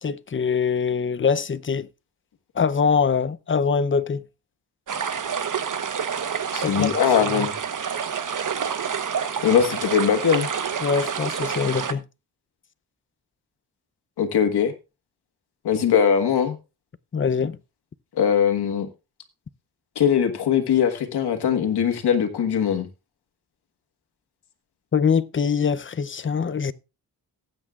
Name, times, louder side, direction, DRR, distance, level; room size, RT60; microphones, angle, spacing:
voice 1, 0.0-1.9 2.5-4.2 6.5-7.5 10.8-12.0 17.1-17.6 24.9-26.7, left 6 dB, 30° left, 0.6 m, -23 dB
sound 1, 4.9-11.9, right 7 dB, 55° right, 1.1 m, -28 dB
voice 2, 6.5-7.5 9.4-10.5 14.2-14.7 15.6-16.5 18.2-18.9 19.9-22.9, left 8 dB, 90° left, 1.6 m, -21 dB
18.5 x 8.6 x 2.4 m
cardioid pair, 70°, 38 cm